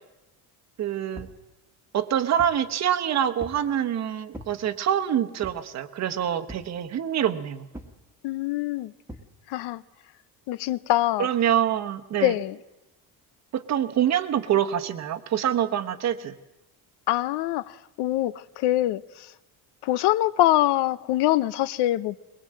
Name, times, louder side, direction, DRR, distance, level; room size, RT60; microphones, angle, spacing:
voice 1, 0.8-1.3 1.9-7.7 11.2-12.3 13.5-16.3, right 10 dB, 40° right, 1.1 m, -25 dB
sound 1, 1.1-1.4 2.0-2.7 3.4-3.7 4.3-4.6 5.4-5.7 6.5-6.8 7.7-8.0 9.1-9.3, equal, 5° right, 1.4 m, -42 dB
voice 2, 8.2-8.9 9.5-9.8 10.5-11.3 12.2-12.6 17.1-19.3 19.8-22.1, left 15 dB, 70° left, 0.7 m, -24 dB
22.0 x 21.0 x 7.6 m
cardioid pair, 165°, 41 cm